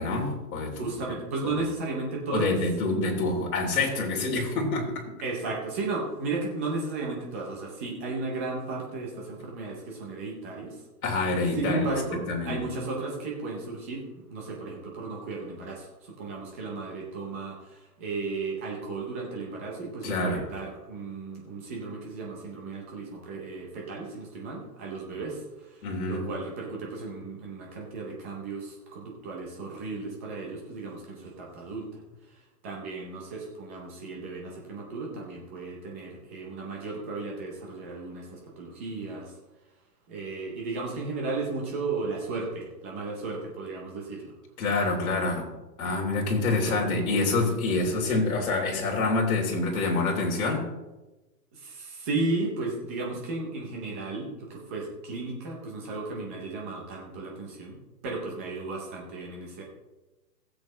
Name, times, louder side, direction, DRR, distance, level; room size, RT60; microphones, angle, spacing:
voice 1, 0.0-0.8 2.3-5.0 11.0-11.9 12.1-12.6 20.0-20.4 25.8-26.3 44.6-45.5 45.8-50.7, left 3 dB, 55° left, -1 dB, 3.4 m, -27 dB
voice 2, 0.8-2.6 5.2-10.8 11.5-32.0 32.3-32.4 32.6-39.4 40.1-44.3 46.4-46.8 51.5-57.8 58.0-59.6, right 3 dB, 10° right, -1 dB, 0.5 m, -34 dB
16.0 x 7.7 x 3.2 m, 1.1 s
hypercardioid pair, 160°, 50 cm